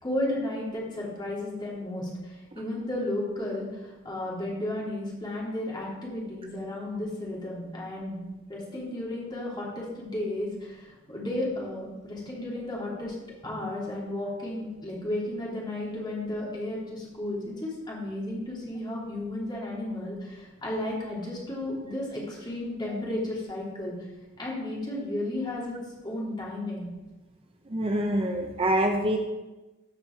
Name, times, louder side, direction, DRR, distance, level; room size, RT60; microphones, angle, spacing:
voice 1, 0.0-13.1 13.4-23.9 24.4-25.8 26.0-26.9, left 1 dB, 25° left, -5 dB, 3.1 m, -33 dB
voice 2, 27.7-29.2, right 1 dB, 30° right, 3 dB, 0.7 m, -25 dB
14.0 x 5.2 x 4.6 m, 1.1 s
head